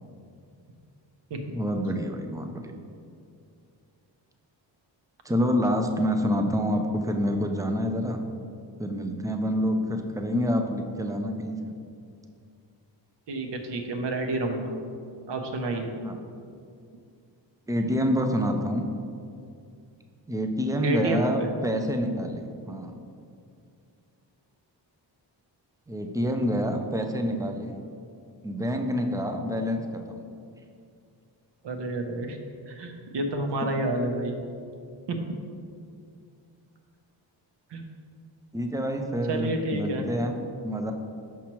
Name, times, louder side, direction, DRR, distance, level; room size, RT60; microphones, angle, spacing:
voice 1, 1.5-2.7 5.2-8.2 8.8-11.7 16.0-16.2 17.7-18.8 20.3-23.0 25.9-27.8 28.4-30.2 33.6-33.7 38.5-40.9, equal, 10° right, 4 dB, 0.3 m, -27 dB
voice 2, 13.3-14.7 15.3-15.9 20.8-21.2 31.6-32.4 32.8-34.3 35.1-35.2 37.7-37.8 39.3-40.0, right 2 dB, 65° right, 3 dB, 0.8 m, -29 dB
6.1 x 5.7 x 3.0 m, 2.4 s
wide cardioid pair, 115°, 45 cm